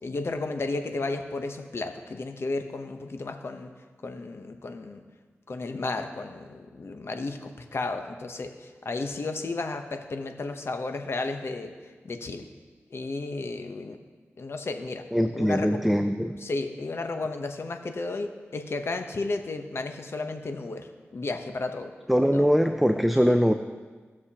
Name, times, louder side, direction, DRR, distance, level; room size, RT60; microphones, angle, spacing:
voice 1, 0.0-3.7 4.0-5.0 5.5-8.5 8.8-11.7 12.0-12.5 12.9-14.0 14.4-15.0 15.3-15.7 16.4-20.9 21.1-21.9 22.3-22.4, left 3 dB, 60° left, 6 dB, 0.9 m, -33 dB
voice 2, 15.1-16.4 22.1-23.5, equal, ahead, 7 dB, 0.4 m, -22 dB
17.0 x 6.5 x 2.9 m, 1.4 s
cardioid pair, 60°, 5 cm